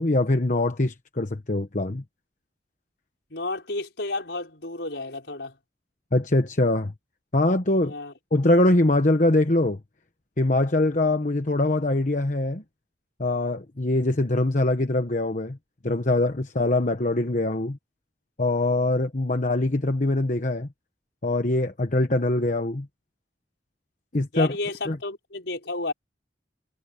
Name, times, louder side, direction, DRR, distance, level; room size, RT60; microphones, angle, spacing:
voice 1, 0.0-2.0 6.1-6.9 7.3-7.9 8.3-9.8 10.4-12.6 13.2-15.6 15.8-17.8 18.4-20.7 21.2-22.9 24.1-24.5 24.9-25.0, left 2 dB, 45° left, 1.1 m, -23 dB
voice 2, 3.3-5.6 7.9-8.1 24.3-25.9, left 2 dB, 75° left, 5.5 m, -31 dB
head